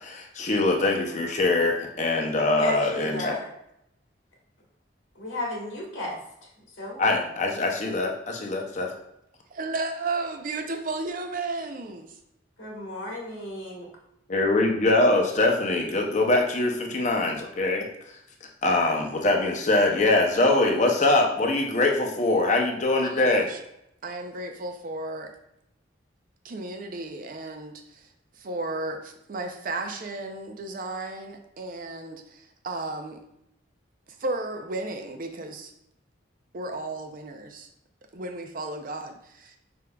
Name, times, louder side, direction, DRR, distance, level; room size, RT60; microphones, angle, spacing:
voice 1, 0.0-3.3 7.0-8.9 14.3-17.9 18.6-23.5, left 2 dB, 40° left, 1 dB, 0.6 m, -23 dB
voice 2, 2.6-3.5 5.1-6.5 6.8-7.1 12.6-13.9, left 1 dB, 85° left, -3 dB, 1.3 m, -34 dB
voice 3, 9.5-12.2 23.0-23.6 24.0-25.3 26.4-33.2 34.2-35.7 36.5-37.7 38.1-39.5, right 2 dB, 45° right, 5 dB, 0.5 m, -34 dB
5.1 x 3.4 x 2.3 m, 0.79 s
head